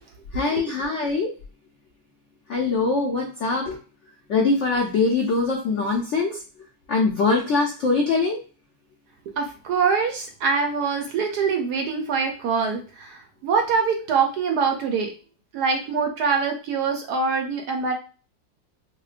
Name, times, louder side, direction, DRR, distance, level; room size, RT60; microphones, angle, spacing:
voice 1, 0.3-1.3 2.5-3.8 4.3-6.4 6.9-8.4, left 3 dB, 80° left, -1 dB, 0.6 m, -22 dB
voice 2, 9.3-15.1 15.5-17.9, right 5 dB, 70° right, 4 dB, 1.0 m, -24 dB
4.3 x 2.1 x 2.4 m, 0.35 s
omnidirectional pair, 2.0 m